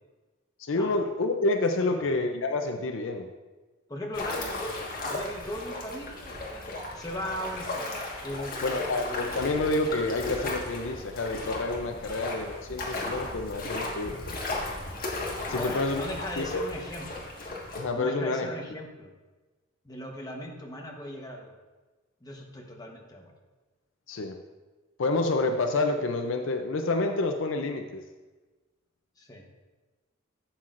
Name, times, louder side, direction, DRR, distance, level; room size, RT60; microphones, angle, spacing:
voice 1, 0.6-3.3 8.6-14.4 15.5-16.0 16.4-16.7 17.8-18.5 24.1-24.4 25.0-28.0, left 2 dB, 65° left, 5 dB, 0.5 m, -28 dB
voice 2, 1.7-2.1 3.9-4.7 5.0-6.6 6.9-9.3 12.0-12.2 15.5-17.3 17.9-19.1 19.8-21.5 22.2-23.3 29.2-29.4, left 1 dB, 20° left, 0 dB, 1.1 m, -38 dB
sound 1, 4.1-17.8, left 2 dB, 45° left, 1.6 m, -35 dB
11.5 x 7.4 x 2.5 m, 1.2 s
head